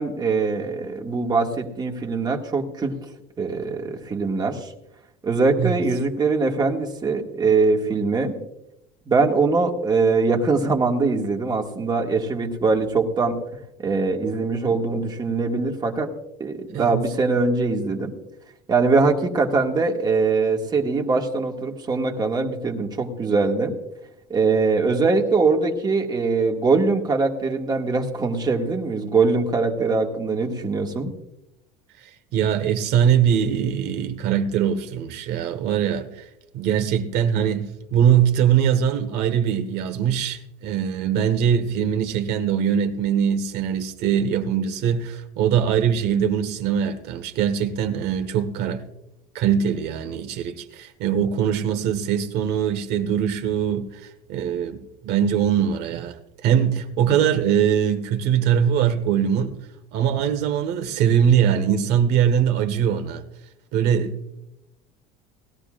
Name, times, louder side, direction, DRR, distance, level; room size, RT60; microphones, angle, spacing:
voice 1, 0.0-3.0 3.4-4.7 5.2-8.4 9.1-13.4 13.8-16.1 16.4-18.1 18.7-23.7 24.3-31.1, right 4 dB, 20° right, 1.7 m, -22 dB
voice 2, 16.7-17.1 32.3-36.1 36.5-48.8 49.3-54.0 54.3-56.2 56.4-59.5 59.9-63.2 63.7-64.4, right 8 dB, 65° right, 1.5 m, -22 dB
19.5 x 13.5 x 2.5 m
cardioid pair, 135°, 19 cm